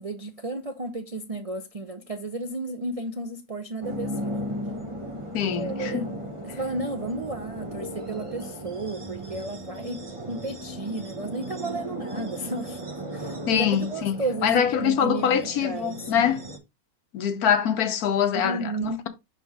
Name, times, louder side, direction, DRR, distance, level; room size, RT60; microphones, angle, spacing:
voice 1, 0.0-4.4 5.5-6.1 6.4-12.8 13.1-16.3 18.4-19.0, right 2 dB, 70° right, 0.3 m, -33 dB
sound 1, 3.8-16.6, equal, 20° right, 1.2 m, -36 dB
voice 2, 5.3-6.1 6.5-6.6 13.5-16.4 17.1-19.1, left 8 dB, 80° left, 1.4 m, -24 dB
6.1 x 5.6 x 3.5 m
omnidirectional pair, 1.6 m